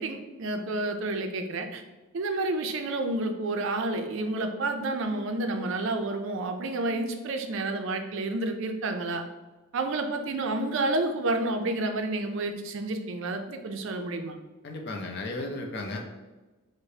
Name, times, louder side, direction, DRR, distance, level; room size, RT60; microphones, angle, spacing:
voice 1, 0.0-1.8 2.1-9.2 9.7-14.4, right 2 dB, 60° right, 6 dB, 0.4 m, -30 dB
voice 2, 14.6-16.0, left 2 dB, 50° left, 2 dB, 0.5 m, -34 dB
4.7 x 2.0 x 2.7 m, 1.2 s
head